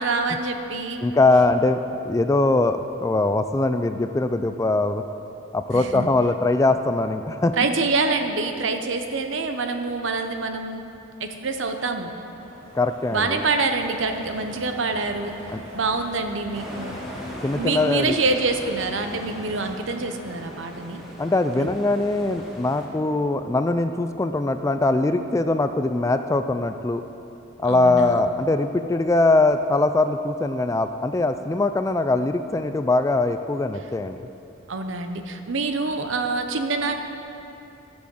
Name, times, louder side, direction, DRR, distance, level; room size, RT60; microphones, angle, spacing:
voice 1, 0.0-1.1 5.7-6.1 7.6-10.8 11.2-12.1 13.1-15.3 15.7-17.0 17.6-21.0 21.5-21.7 27.7-28.3 34.7-37.0, right 3 dB, 70° right, 6 dB, 0.8 m, -26 dB
voice 2, 1.0-5.0 5.5-7.5 12.7-13.4 15.5-15.6 17.4-18.1 21.2-27.0 27.6-34.3, left 2 dB, 15° left, 9 dB, 0.3 m, -22 dB
sound 1, 11.9-19.8, equal, 90° right, 2.0 m, -42 dB
sound 2, 16.5-22.9, equal, ahead, 1.6 m, -39 dB
12.0 x 6.2 x 7.6 m, 2.8 s
head